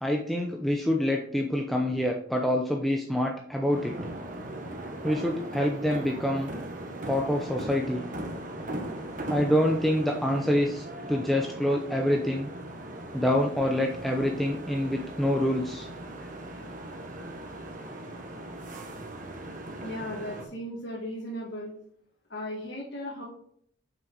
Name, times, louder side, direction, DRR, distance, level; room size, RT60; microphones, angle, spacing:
voice 1, 0.0-3.9 5.0-6.5 7.1-8.0 9.3-12.5 13.1-15.9, left 1 dB, ahead, 0 dB, 0.6 m, -26 dB
sound 1, 3.7-20.4, right 1 dB, 45° right, 1.2 m, -39 dB
voice 2, 19.8-21.7 22.3-23.2, equal, 70° left, -5 dB, 2.0 m, -36 dB
7.9 x 6.0 x 3.9 m, 0.65 s
head